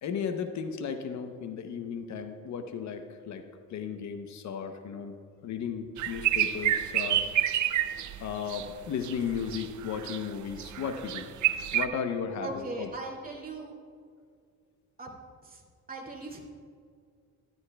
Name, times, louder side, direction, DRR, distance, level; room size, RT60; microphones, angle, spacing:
voice 1, 0.0-3.4 3.7-7.3 8.2-11.3 11.7-12.9, left 7 dB, 65° left, 8 dB, 0.9 m, -35 dB
sound 1, 6.0-8.7 9.0-10.3 10.5-11.9, right 12 dB, 75° right, 0.6 m, -28 dB
voice 2, 12.4-13.7 15.0-15.2 15.4-15.6 15.9-16.4, right 2 dB, 30° right, -1 dB, 2.2 m, -39 dB
13.0 x 12.5 x 2.3 m, 2.2 s
cardioid pair, 90°, 30 cm